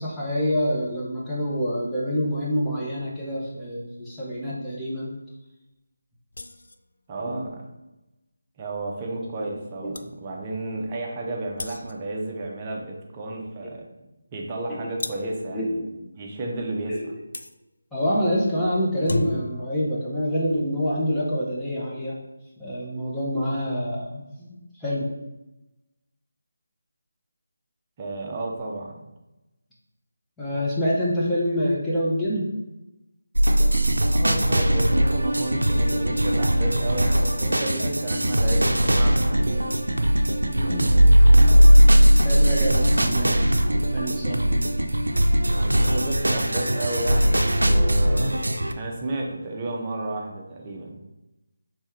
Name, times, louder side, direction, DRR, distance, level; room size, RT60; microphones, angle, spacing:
voice 1, 0.0-5.1 7.2-7.4 9.8-9.9 14.7-14.8 15.5-16.1 16.9-17.1 17.9-22.2 22.6-25.1 30.4-32.5 40.5-40.8 42.1-43.5 43.8-44.7 48.1-48.3, equal, 5° left, -9 dB, 0.9 m, -27 dB
sound 1, 6.3-6.8 9.5-9.6 9.9-10.1 11.6-12.1 15.0-15.4 17.3-17.5 18.8-19.7, left 2 dB, 70° left, 0.3 m, -33 dB
voice 2, 7.1-7.6 8.6-13.9 14.3-15.8 16.2-17.2 28.0-29.0 34.1-39.7 40.7-41.0 45.6-48.4 48.8-51.0, right 2 dB, 25° right, 0 dB, 0.7 m, -32 dB
sound 2, 33.4-48.7, equal, 85° right, 0.5 m, -19 dB
3.4 x 3.4 x 4.4 m, 0.98 s
figure-of-eight pair, 160°, 0 cm